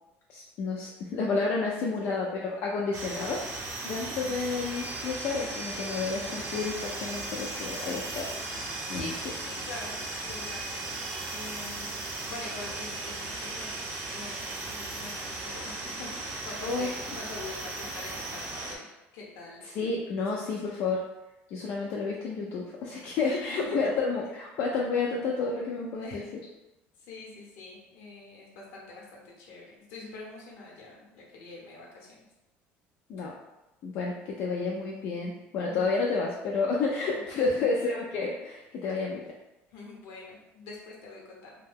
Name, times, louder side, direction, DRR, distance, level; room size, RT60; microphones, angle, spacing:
voice 1, 0.3-8.3 8.9-9.1 16.6-16.9 19.6-21.0 21.5-26.2 33.1-33.3 33.8-39.2, left 4 dB, 55° left, -2 dB, 0.4 m, -30 dB
sound 1, 2.9-18.8, right 2 dB, 50° right, 0.7 m, -37 dB
voice 2, 8.9-11.0 11.3-13.7 14.1-18.9 19.1-19.6 20.3-20.7 23.2-23.9 25.9-26.3 27.0-32.2 35.6-35.9 37.3-37.6 39.7-41.5, left 3 dB, 75° left, -2 dB, 0.9 m, -44 dB
2.7 x 2.2 x 3.4 m, 1.0 s
cardioid pair, 145°, 5 cm